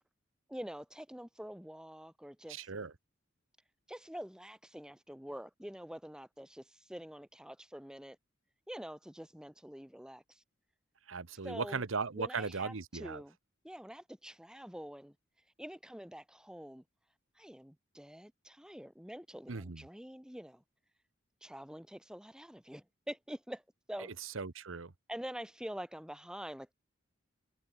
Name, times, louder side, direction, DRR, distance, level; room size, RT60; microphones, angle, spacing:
voice 1, 0.5-2.7 3.9-8.2 8.7-10.4 11.4-11.8 12.1-13.4 13.6-15.1 15.6-16.8 17.3-20.6 21.4-23.6 23.9-24.1 25.1-26.7, equal, 5° right, 1.7 m, -46 dB
voice 2, 2.6-2.9 11.1-13.2 19.5-19.8 24.4-24.9, right 4 dB, 80° right, 1.0 m, -37 dB
head